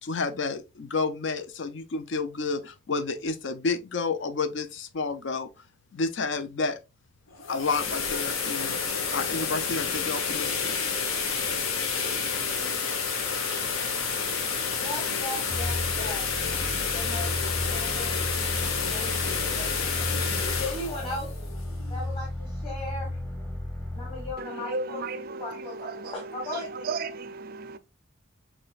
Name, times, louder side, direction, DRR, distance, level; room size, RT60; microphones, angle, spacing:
voice 1, 0.0-5.5 5.9-6.8 7.5-8.8 9.1-10.8, left 4 dB, 60° left, 0.5 m, -30 dB
sound 1, 7.3-22.2, left 5 dB, 85° left, 0.9 m, -29 dB
voice 2, 14.8-18.2 18.9-21.3 21.9-23.2 23.9-26.9, left 1 dB, 25° left, 1.4 m, -38 dB
sound 2, 15.5-24.3, left 1 dB, 10° left, 0.8 m, -34 dB
voice 3, 24.4-27.8, right 3 dB, 45° right, 0.4 m, -35 dB
6.0 x 3.2 x 2.3 m
head